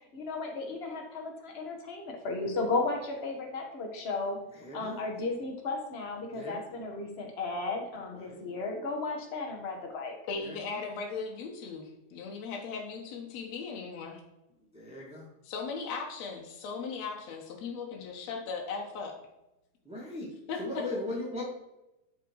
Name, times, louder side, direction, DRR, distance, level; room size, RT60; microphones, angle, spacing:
voice 1, 0.1-4.4 4.7-10.1, left 3 dB, 45° left, 2 dB, 0.8 m, -34 dB
voice 2, 4.6-5.0 6.3-6.9 8.3-8.5 10.4-10.6 14.7-15.3 19.8-20.3 20.6-21.4, left 2 dB, 5° right, -5 dB, 1.2 m, -38 dB
voice 3, 10.3-14.2 15.4-19.1 20.5-20.8, left 4 dB, 70° left, 0 dB, 2.3 m, -37 dB
12.5 x 4.8 x 4.7 m, 0.94 s
omnidirectional pair, 3.3 m